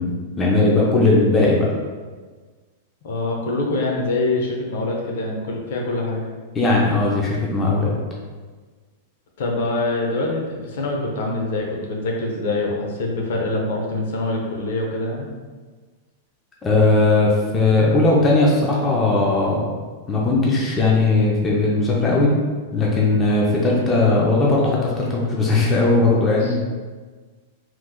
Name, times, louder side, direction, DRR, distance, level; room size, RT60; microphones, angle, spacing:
voice 1, 0.0-1.7 6.6-7.9 16.6-19.7 20.1-22.3 22.7-26.6, left 2 dB, 15° left, -4 dB, 0.4 m, -18 dB
voice 2, 3.0-6.2 9.4-15.3 26.4-26.5, left 2 dB, 65° left, 0 dB, 0.6 m, -24 dB
3.0 x 2.1 x 3.6 m, 1.4 s
supercardioid pair, 170°, 0 cm